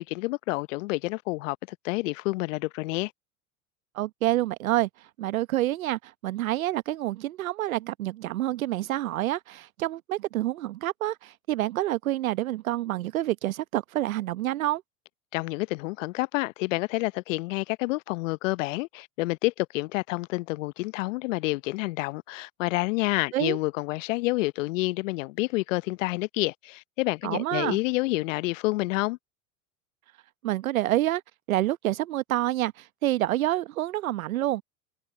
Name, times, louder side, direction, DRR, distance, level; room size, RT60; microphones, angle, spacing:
voice 1, 0.0-3.1 15.3-29.2, left 22 dB, 65° left, 0.8 m, -29 dB
voice 2, 3.9-4.9 5.2-14.8 23.3-23.6 27.2-27.8 30.4-31.2 31.5-34.6, right 15 dB, 75° right, 1.1 m, -28 dB
hypercardioid pair, 85°, 41 cm